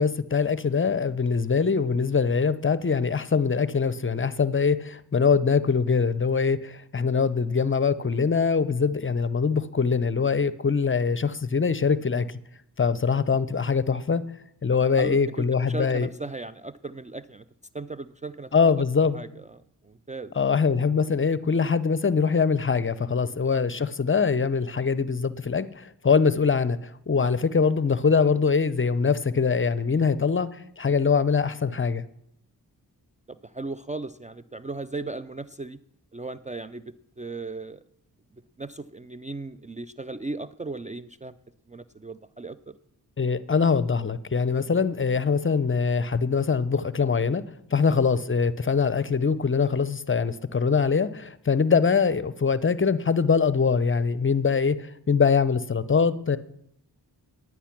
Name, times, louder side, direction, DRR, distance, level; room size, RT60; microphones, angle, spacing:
voice 1, 0.0-12.3 12.8-14.2 14.6-16.1 18.5-19.2 20.4-30.5 30.8-32.1 43.2-47.4 47.7-56.4, left 5 dB, 30° left, 17 dB, 0.6 m, -23 dB
voice 2, 14.7-17.4 17.7-18.7 19.1-20.3 23.2-23.4 33.3-35.8 36.1-37.8 38.6-41.3 41.7-42.6 47.7-47.8, right 3 dB, 20° right, 13 dB, 0.4 m, -37 dB
10.0 x 9.4 x 5.9 m, 0.75 s
cardioid pair, 45°, 41 cm